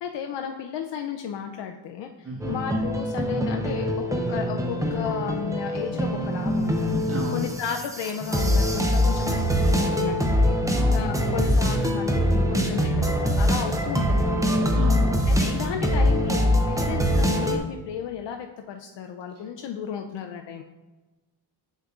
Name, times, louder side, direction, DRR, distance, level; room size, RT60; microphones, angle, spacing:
voice 1, 0.0-14.5 15.3-20.6, left 8 dB, 65° left, 4 dB, 0.6 m, -34 dB
voice 2, 2.2-2.5 7.1-7.4 10.7-11.0 14.7-15.1, right 1 dB, 30° right, -2 dB, 1.0 m, -32 dB
sound 1, 2.4-17.6, equal, 5° right, 0.6 m, -23 dB
6.4 x 6.4 x 2.4 m, 1.2 s
cardioid pair, 75°, 46 cm